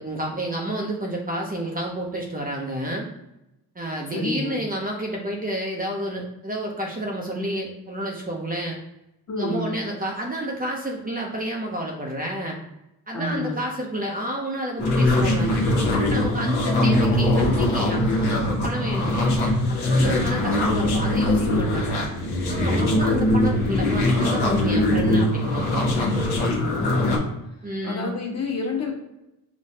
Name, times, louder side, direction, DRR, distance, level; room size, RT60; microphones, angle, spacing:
voice 1, 0.0-3.1 3.8-8.8 9.4-12.6 13.1-15.5 15.9-19.2 19.7-22.0 22.5-26.2 27.6-28.1, right 1 dB, 25° right, -1 dB, 0.6 m, -30 dB
voice 2, 4.1-4.6 9.3-9.8 13.1-13.6 15.9-16.2 19.8-20.2 22.7-23.5 26.4-27.3 27.8-28.9, left 2 dB, 40° left, -2 dB, 1.2 m, -30 dB
sound 1, 14.8-27.2, left 1 dB, 85° left, 1.0 m, -21 dB
4.9 x 2.2 x 2.7 m, 0.91 s
cardioid pair, 100°, 38 cm